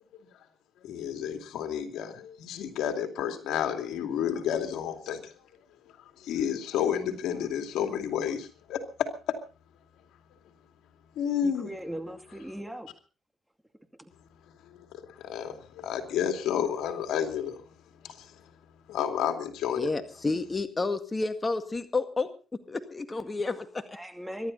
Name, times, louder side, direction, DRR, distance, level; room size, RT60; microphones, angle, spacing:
voice 1, 0.8-5.3 6.2-9.4 11.2-11.7 14.9-17.6 18.0-18.3 18.9-19.9, left 9 dB, 85° left, 2.6 m, -31 dB
voice 2, 11.4-12.9 14.0-14.1 23.9-24.5, equal, 5° right, 2.4 m, -38 dB
voice 3, 19.8-22.3 22.7-24.0, left 3 dB, 25° left, 1.9 m, -30 dB
24.5 x 12.0 x 4.1 m
cardioid pair, 90°, 0 cm